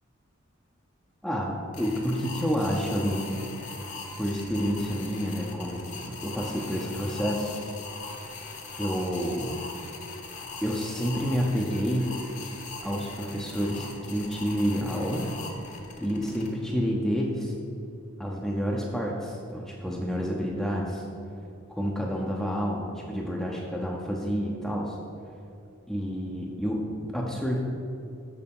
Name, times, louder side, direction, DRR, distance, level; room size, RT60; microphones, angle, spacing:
voice 1, 1.2-3.4 4.2-7.5 8.8-9.6 10.6-12.1 12.8-15.3 16.0-17.5 18.2-21.0 21.7-25.0 25.9-27.6, equal, ahead, -3 dB, 0.6 m, -29 dB
sound 1, 1.7-16.5, left 4 dB, 40° left, 1.0 m, -41 dB
6.8 x 6.4 x 5.3 m, 2.7 s
head